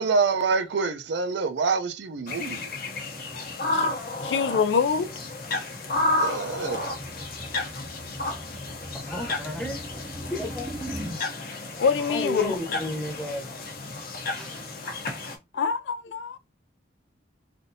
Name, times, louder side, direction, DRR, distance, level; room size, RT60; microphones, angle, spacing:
voice 1, 0.0-2.7 6.2-7.0, right 4 dB, 70° right, 0.5 m, -26 dB
sound 1, 2.3-15.3, left 2 dB, 50° left, 0.7 m, -32 dB
voice 2, 4.2-5.1 10.2-10.3 11.8-12.8 15.5-16.4, left 6 dB, 70° left, 0.3 m, -25 dB
sound 2, 5.9-11.2, equal, 20° right, 0.5 m, -40 dB
voice 3, 9.1-9.8 10.3-10.7 12.0-13.5 14.3-14.6 14.9-15.0, left 1 dB, 5° left, 0.8 m, -33 dB
3.3 x 2.6 x 2.6 m
head